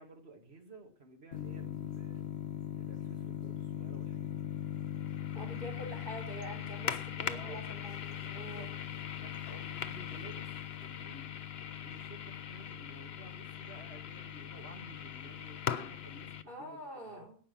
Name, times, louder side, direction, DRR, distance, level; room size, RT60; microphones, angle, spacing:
voice 1, 0.0-2.2 2.8-4.5 5.5-6.1 7.2-7.7 8.2-11.3 11.8-17.2, right 2 dB, 80° right, 3 dB, 2.2 m, -54 dB
sound 1, 1.3-16.4, left 10 dB, 80° left, 1.0 m, -40 dB
voice 2, 5.3-8.8 16.5-17.4, right 1 dB, 60° right, -2 dB, 4.8 m, -45 dB
17.0 x 5.9 x 6.8 m, 0.43 s
omnidirectional pair, 1.0 m